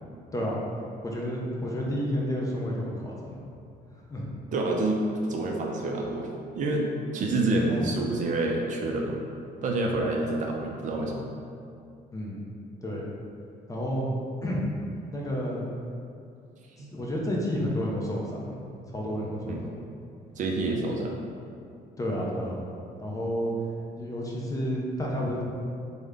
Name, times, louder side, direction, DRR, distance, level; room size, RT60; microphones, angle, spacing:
voice 1, 1.0-3.4 4.1-4.3 7.7-7.9 12.1-12.4 12.8-13.1 13.7-14.1 14.4-14.6 15.1-15.6 16.9-19.7 22.0-22.6 23.0-23.5 24.0-25.4, equal, 20° left, -4 dB, 0.6 m, -30 dB
voice 2, 4.5-5.0 5.3-9.2 9.6-11.2 16.8-16.9 19.5-19.6 20.4-21.2, right 2 dB, 50° right, 0 dB, 0.4 m, -28 dB
3.5 x 2.2 x 3.4 m, 2.4 s
cardioid pair, 110°, 17 cm